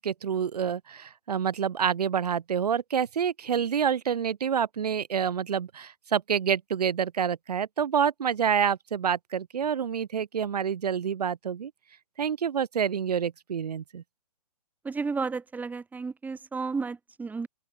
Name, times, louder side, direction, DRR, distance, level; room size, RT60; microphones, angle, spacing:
voice 1, 0.0-11.7 12.2-14.0, right 7 dB, 75° right, 4.6 m, -27 dB
voice 2, 14.8-17.5, right 4 dB, 10° right, 4.1 m, -32 dB
open air
hypercardioid pair, 145°, 20 cm